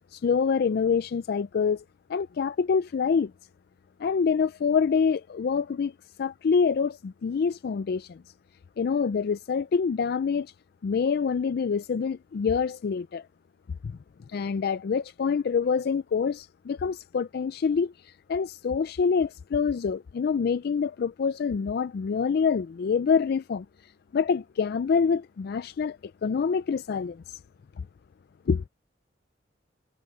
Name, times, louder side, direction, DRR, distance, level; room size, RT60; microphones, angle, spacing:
voice 1, 0.1-1.8 2.1-3.3 4.0-5.9 6.2-8.2 8.8-10.5 10.8-13.3 13.8-14.0 14.3-23.7 24.1-27.2 27.8-27.9 28.5-28.6, left 6 dB, 55° left, 0.4 m, -26 dB
head